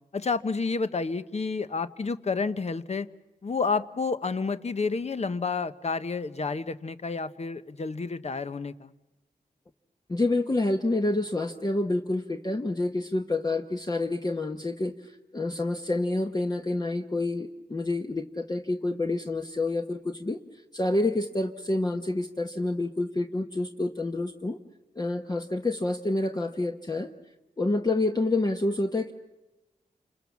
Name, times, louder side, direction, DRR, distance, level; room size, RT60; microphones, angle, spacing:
voice 1, 0.1-3.1 3.4-8.9, left 4 dB, 50° left, 12 dB, 1.0 m, -30 dB
voice 2, 10.1-14.9 15.3-20.4 20.7-24.6 25.0-27.1 27.6-29.1, left 2 dB, 25° left, 4 dB, 1.1 m, -28 dB
28.5 x 27.0 x 7.2 m, 1.0 s
wide cardioid pair, 105°, 15 cm